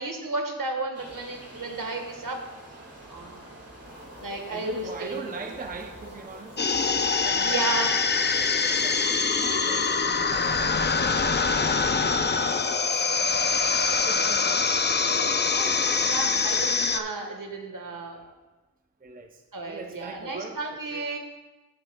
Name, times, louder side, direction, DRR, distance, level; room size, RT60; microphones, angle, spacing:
voice 1, 0.0-2.4 3.1-3.4 4.2-5.2 7.4-8.0 15.5-15.7 16.0-18.2 19.5-21.2, right 3 dB, 65° right, 3 dB, 1.4 m, -33 dB
sound 1, 0.9-7.9, right 1 dB, 40° right, 1.9 m, -47 dB
sound 2, 3.8-9.0, left 1 dB, 60° left, 3.2 m, -48 dB
voice 2, 3.8-6.6 7.2-11.4 12.0-13.2 13.7-13.8 14.0-14.8 15.6-16.0 19.0-20.6 20.9-21.0, right 4 dB, 25° right, 5 dB, 0.6 m, -42 dB
sound 3, 6.6-17.0, left 4 dB, 30° left, 0.4 m, -24 dB
17.5 x 6.0 x 2.2 m, 1.1 s
wide cardioid pair, 90°, 35 cm